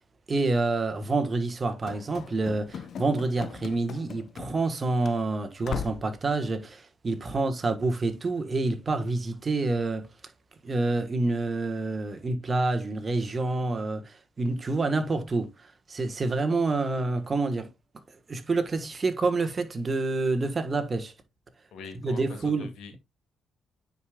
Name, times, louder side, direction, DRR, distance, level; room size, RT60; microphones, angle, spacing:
voice 1, 0.3-10.1 10.6-17.7 18.3-21.1 22.0-22.7, right 3 dB, 30° right, 1.3 m, -28 dB
Run / Slam, 1.9-4.8 5.0-5.2 5.6-6.1, left 7 dB, 60° left, 0.8 m, -38 dB
voice 2, 21.7-23.0, left 5 dB, 75° left, 2.2 m, -44 dB
9.5 x 5.0 x 2.3 m
cardioid pair, 90°, 0 cm